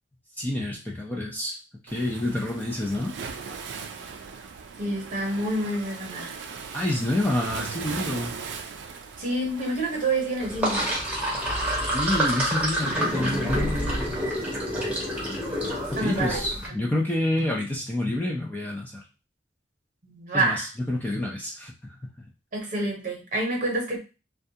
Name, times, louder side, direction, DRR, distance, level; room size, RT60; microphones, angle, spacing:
voice 1, 0.4-1.6 1.8-3.1 6.7-8.3 11.9-14.6 15.9-19.0 20.3-22.2, left 1 dB, 10° left, -2 dB, 0.5 m, -28 dB
Waves surf, 1.9-10.6, right 5 dB, 75° right, 0.4 m, -38 dB
voice 2, 4.8-6.4 9.2-10.9 15.9-16.4 20.0-20.7 22.5-24.0, right 2 dB, 50° right, 1 dB, 0.9 m, -28 dB
Sink (filling or washing), 10.4-16.7, equal, 10° right, 0.9 m, -27 dB
2.3 x 2.2 x 2.7 m, 0.30 s
head